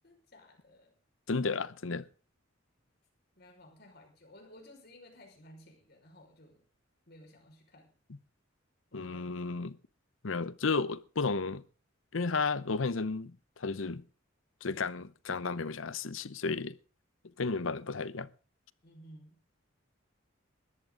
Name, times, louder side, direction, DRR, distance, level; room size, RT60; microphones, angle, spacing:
voice 1, 0.0-0.9 3.4-6.7 7.1-8.0 8.9-9.5 18.8-19.4, left 1 dB, 55° left, 5.4 m, -56 dB
voice 2, 1.3-2.1 8.9-9.8 10.2-11.6 12.1-14.0 14.6-16.8 17.4-18.3, left 4 dB, 80° left, 0.8 m, -33 dB
19.0 x 14.0 x 3.9 m
head